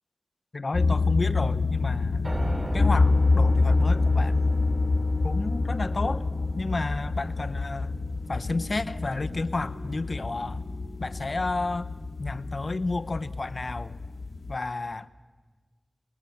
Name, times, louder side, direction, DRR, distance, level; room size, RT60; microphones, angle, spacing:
voice 1, 0.5-2.3 2.7-4.4 5.2-6.3 6.6-8.0 8.3-10.6 11.0-11.9 12.2-14.0 14.5-15.1, left 3 dB, 55° left, 0.8 m, -31 dB
sound 1, 0.7-14.6, left 3 dB, 80° left, 1.4 m, -27 dB
Piano, 2.2-10.3, equal, 25° right, 3.1 m, -35 dB
27.5 x 19.5 x 7.1 m
wide cardioid pair, 60°, 0 cm